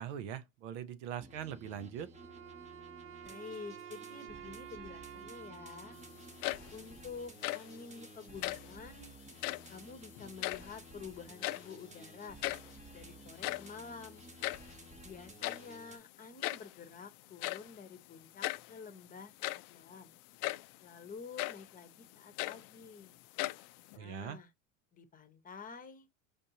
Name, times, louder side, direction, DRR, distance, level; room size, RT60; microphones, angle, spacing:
voice 1, 0.0-2.1 23.9-24.4, right 9 dB, 75° right, 0.7 m, -41 dB
sound 1, 1.2-16.0, right 2 dB, 20° right, 0.9 m, -54 dB
Wind instrument woodwind instrument, 2.1-7.3, right 10 dB, 35° right, 0.6 m, -51 dB
voice 2, 3.2-6.0 6.7-9.1 9.7-12.4 12.9-14.3 15.0-20.1 20.8-23.1 23.9-24.5 24.9-26.1, left 5 dB, 20° left, 0.9 m, -49 dB
sound 2, 6.2-6.9 7.2-7.8 8.3-8.8 9.3-9.8 10.1-11.0 11.2-11.9 12.1-12.2 12.4-12.8 13.2-14.8 15.4-15.8 16.4-16.8 17.4-17.7 18.4-18.7 19.2-19.8 20.4-20.7 21.4-21.7 22.1-23.0 23.4-24.0, left 19 dB, 55° left, 0.4 m, -38 dB
5.1 x 2.6 x 2.8 m
supercardioid pair, 110°, 37 cm